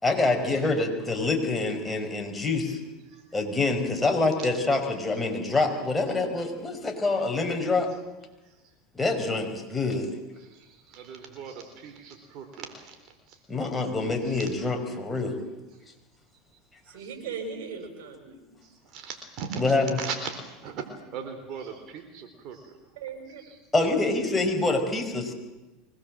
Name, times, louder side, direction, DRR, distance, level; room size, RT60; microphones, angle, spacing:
voice 1, 0.0-2.8 3.3-7.9 8.9-10.1 13.5-15.4 19.6-20.0 23.7-25.3, left 3 dB, 10° left, 2 dB, 5.0 m, -26 dB
voice 2, 10.4-13.0 13.3-13.4 14.0-14.5 17.0-17.1 18.6-20.8 21.1-22.8 23.3-23.6, right 6 dB, 55° right, 6 dB, 3.9 m, -39 dB
voice 3, 16.8-18.4 23.0-23.4, right 5 dB, 70° right, 5 dB, 6.2 m, -38 dB
24.0 x 20.0 x 7.7 m, 1.1 s
hypercardioid pair, 100°, 0 cm